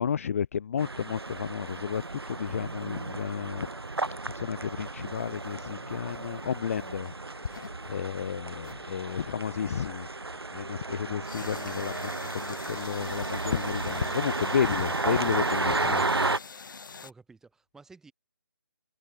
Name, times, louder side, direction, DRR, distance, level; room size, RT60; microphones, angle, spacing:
voice 1, 0.0-3.7 4.3-10.1 10.5-16.0, left 7 dB, 35° left, 0.6 m, -32 dB
sound 1, 0.8-16.4, right 3 dB, 85° right, 1.8 m, -33 dB
sound 2, 1.1-7.0, right 4 dB, 70° right, 3.0 m, -47 dB
sound 3, 3.0-4.3 5.1-6.1 6.8-8.8 9.3-9.7 11.2-17.1, left 5 dB, 55° left, 6.9 m, -46 dB
voice 2, 17.0-18.1, right 4 dB, 5° right, 4.0 m, -52 dB
figure-of-eight pair, 155°, 13 cm